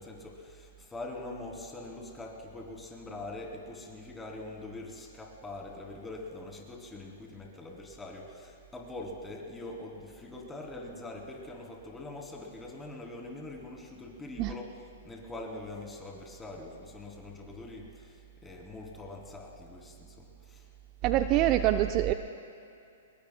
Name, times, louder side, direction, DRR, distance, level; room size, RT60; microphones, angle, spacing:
voice 1, 0.0-20.7, left 2 dB, 10° left, -1 dB, 2.9 m, -43 dB
voice 2, 21.0-22.1, right 13 dB, 35° right, 8 dB, 0.5 m, -25 dB
24.5 x 22.0 x 2.2 m, 2.6 s
hypercardioid pair, 120°, 0 cm